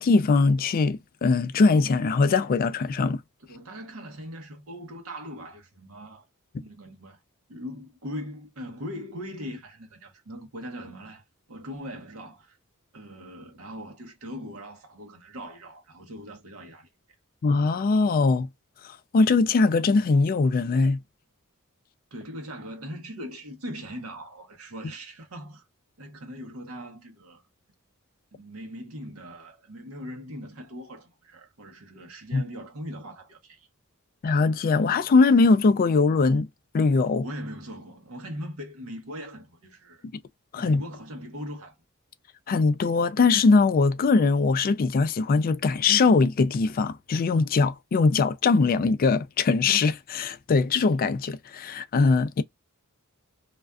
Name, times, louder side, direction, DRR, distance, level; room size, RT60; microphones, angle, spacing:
voice 1, 0.0-3.2 17.4-18.5 19.1-21.0 32.3-32.4 34.2-36.5 36.7-37.2 40.5-40.8 42.5-52.4, left 4 dB, 40° left, 0.3 m, -21 dB
voice 2, 3.5-6.2 6.6-7.2 7.5-12.6 12.9-16.9 22.1-25.6 26.0-27.4 28.3-33.7 37.2-40.0 40.6-41.8, equal, 90° right, 0.9 m, -40 dB
2.4 x 2.3 x 2.3 m
head